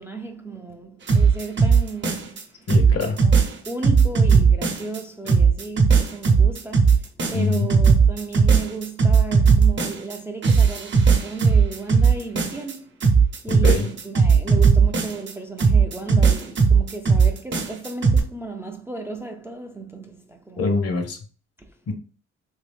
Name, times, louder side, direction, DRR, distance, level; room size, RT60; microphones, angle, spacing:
voice 1, 0.0-2.4 3.2-3.4 3.7-13.1 13.4-20.6 21.6-21.7, right 3 dB, 10° right, 0.4 m, -34 dB
sound 1, 1.1-2.4 2.7-5.0 5.3-10.2 10.4-12.7 13.0-15.3 15.6-18.2, right 5 dB, 40° right, 0.7 m, -17 dB
voice 2, 2.7-3.2 7.3-7.7 13.5-13.9 20.6-21.2 21.9-22.0, left 4 dB, 55° left, 0.8 m, -24 dB
2.9 x 2.7 x 3.3 m
cardioid pair, 90°, 30 cm